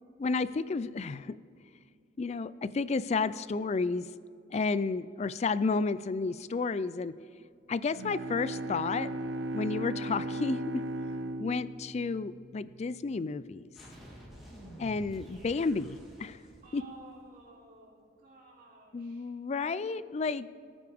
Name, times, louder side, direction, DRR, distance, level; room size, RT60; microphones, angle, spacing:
voice 1, 0.2-1.4 2.2-4.1 4.5-7.1 7.7-9.1 9.5-10.8 11.4-13.7 14.8-16.4 16.7-16.8 18.9-20.5, left 4 dB, 35° left, 16 dB, 0.3 m, -31 dB
Bowed string instrument, 7.9-13.0, right 1 dB, 80° right, 0.7 m, -37 dB
sound 1, 13.7-17.4, equal, ahead, 3.0 m, -50 dB
voice 2, 16.6-19.3, right 2 dB, 50° right, -4 dB, 3.4 m, -54 dB
22.5 x 9.4 x 3.5 m, 2.3 s
head